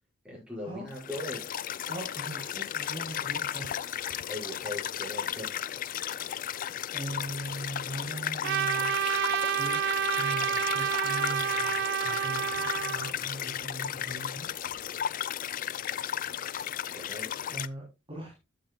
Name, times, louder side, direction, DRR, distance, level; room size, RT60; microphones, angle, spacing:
voice 1, 0.2-1.5 4.3-5.6 16.9-17.3, left 1 dB, 5° right, -4 dB, 5.5 m, -39 dB
sound 1, 0.9-17.7, left 10 dB, 45° left, 0.4 m, -34 dB
voice 2, 1.9-4.0 6.9-8.9 9.6-9.8 10.1-14.5 17.5-18.3, right 1 dB, 25° right, -5 dB, 3.4 m, -40 dB
Trumpet, 8.4-13.1, right 9 dB, 55° right, 0.4 m, -29 dB
12.5 x 7.8 x 2.3 m, 0.25 s
head